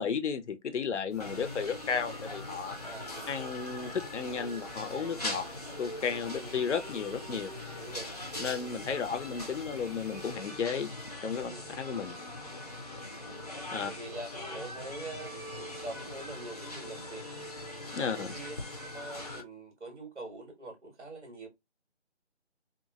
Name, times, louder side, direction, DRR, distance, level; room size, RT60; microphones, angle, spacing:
voice 1, 0.0-2.8 3.3-5.5 5.8-7.5 8.4-10.9 11.2-12.2 13.7-13.9 17.9-18.4, left 6 dB, 85° left, 0.6 m, -33 dB
sound 1, 1.1-10.3, right 1 dB, 35° right, 0.6 m, -58 dB
sound 2, 1.2-19.4, left 1 dB, 35° left, 0.5 m, -41 dB
voice 2, 2.8-3.3 6.3-6.5 7.7-8.1 11.5-11.7 12.0-12.2 13.3-13.5 13.8-17.5 18.1-18.6 18.9-21.5, right 2 dB, 85° right, 1.7 m, -44 dB
2.9 x 2.4 x 2.3 m
figure-of-eight pair, 165°, 35 cm